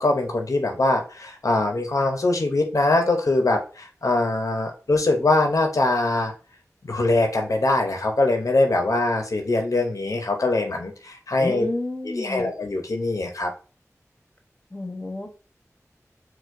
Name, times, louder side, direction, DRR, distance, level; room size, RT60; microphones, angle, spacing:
voice 1, 0.0-6.3 6.8-11.6 12.2-13.5, left 2 dB, 70° left, 4 dB, 0.5 m, -22 dB
voice 2, 11.4-12.5 14.7-15.3, left 2 dB, 20° left, 4 dB, 0.8 m, -30 dB
4.4 x 2.1 x 2.4 m, 0.37 s
wide cardioid pair, 45°, 6 cm